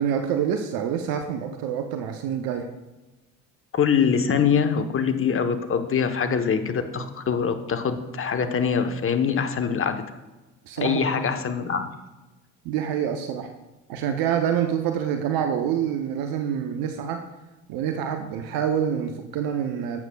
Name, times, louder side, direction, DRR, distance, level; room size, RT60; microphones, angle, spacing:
voice 1, 0.0-2.7 10.7-11.1 12.6-13.5 13.9-17.2 17.7-20.0, right 8 dB, 70° right, 6 dB, 0.7 m, -26 dB
voice 2, 3.7-10.0 10.8-11.9, left 6 dB, 35° left, 8 dB, 1.0 m, -24 dB
12.0 x 7.9 x 2.3 m, 1.1 s
hypercardioid pair, 55°, 37 cm